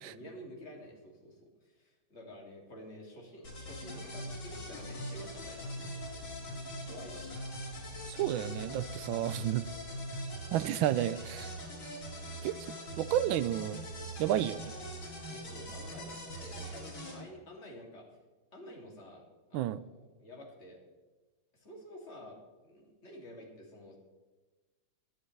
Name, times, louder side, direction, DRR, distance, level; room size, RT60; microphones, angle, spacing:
voice 1, 0.0-6.5 6.8-7.3 8.5-8.6 9.4-9.6 15.3-18.1 18.5-19.2 19.5-20.8 21.5-22.4 22.6-24.0, left 1 dB, 30° left, -2 dB, 2.9 m, -50 dB
sound 1, 3.4-17.2, equal, 85° left, 4.9 m, -42 dB
voice 2, 8.1-9.7 10.5-11.5 12.4-13.8 14.2-14.7 19.5-19.8, right 12 dB, 75° right, 15 dB, 1.3 m, -31 dB
19.5 x 11.5 x 3.3 m, 1.2 s
omnidirectional pair, 2.4 m